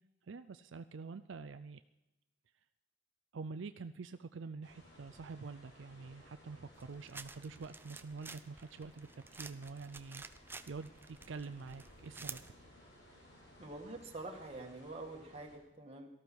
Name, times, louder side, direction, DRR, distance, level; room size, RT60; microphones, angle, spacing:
voice 1, 0.3-1.8 3.3-10.2 10.7-12.4, right 4 dB, 70° right, 10 dB, 0.5 m, -46 dB
sound 1, 4.6-15.6, equal, 65° left, 6.0 m, -60 dB
sound 2, 6.8-12.5, right 4 dB, 10° right, 0.5 m, -51 dB
voice 2, 13.6-16.1, right 2 dB, 30° right, 1 dB, 2.1 m, -46 dB
18.0 x 13.5 x 4.7 m, 0.95 s
head